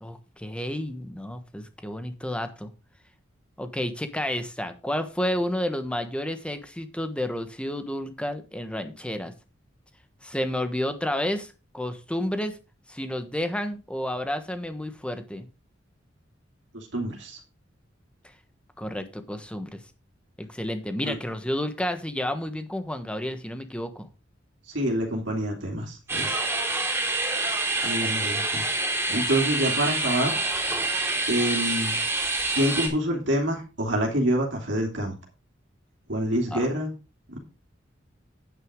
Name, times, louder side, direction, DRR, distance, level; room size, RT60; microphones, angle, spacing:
voice 1, 0.0-2.7 3.6-9.3 10.2-12.6 12.9-15.5 18.8-19.8 20.4-24.1 36.5-36.6, left 1 dB, 5° left, 8 dB, 1.3 m, -31 dB
voice 2, 16.7-17.4 21.1-21.2 24.7-26.4 27.8-28.6 29.1-30.3 31.3-32.0 32.5-35.1 36.1-36.9, right 1 dB, 70° right, 0 dB, 2.9 m, -26 dB
sound 1, 26.1-32.9, right 2 dB, 15° right, 3.4 m, -27 dB
9.4 x 9.4 x 3.7 m, 0.30 s
head